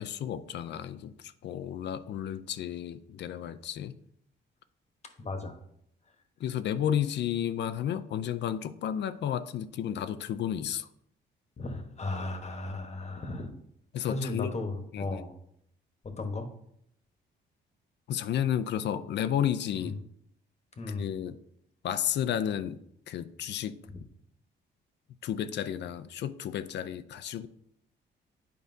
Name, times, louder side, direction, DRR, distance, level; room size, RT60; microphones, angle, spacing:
voice 1, 0.0-4.0 6.4-10.9 13.9-14.6 14.9-15.2 18.1-20.0 20.9-21.4 21.8-22.8 23.1-23.8 25.2-27.5, left 10 dB, 60° left, 12 dB, 0.4 m, -32 dB
voice 2, 5.2-5.6 11.6-13.5 14.1-15.3 16.0-16.5 19.8-19.9 20.8-21.1 23.9-24.0, left 2 dB, 35° left, 6 dB, 1.1 m, -35 dB
9.3 x 4.9 x 2.7 m, 0.72 s
cardioid pair, 90°, 20 cm